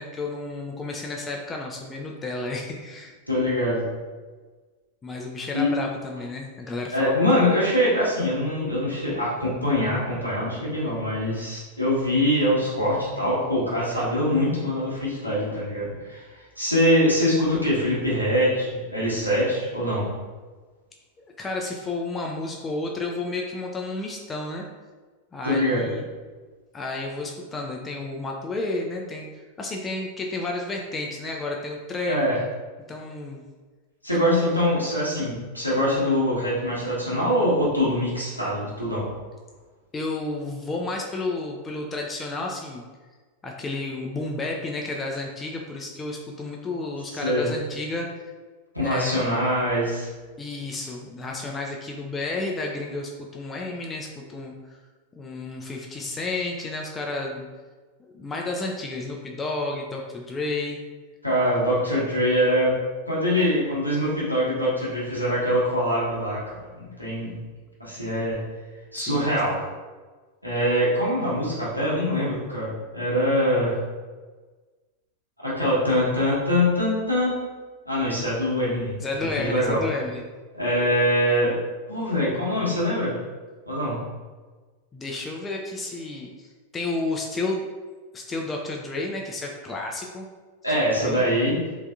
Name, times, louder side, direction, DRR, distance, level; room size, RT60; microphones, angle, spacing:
voice 1, 0.0-3.1 5.0-7.3 21.4-24.7 25.3-26.1 26.7-32.4 32.9-33.4 34.3-34.4 39.9-42.8 43.4-48.1 48.8-49.4 50.4-54.8 55.2-57.5 58.0-60.8 69.0-69.3 79.0-80.2 84.9-87.7 88.1-90.2 91.0-91.2, left 2 dB, 15° left, 0 dB, 0.3 m, -31 dB
voice 2, 3.3-3.8 5.5-5.7 6.9-16.2 16.6-20.1 25.4-25.9 32.1-32.4 34.0-39.0 47.1-47.5 48.7-50.1 61.2-62.8 63.1-67.3 67.8-68.4 68.9-69.6 70.4-73.8 75.4-77.4 77.8-78.9 79.4-79.8 80.5-81.6 81.9-83.2 83.7-84.0 90.6-91.6, equal, 90° right, -9 dB, 1.1 m, -23 dB
3.3 x 2.6 x 2.3 m, 1.4 s
figure-of-eight pair, 90°, 0 cm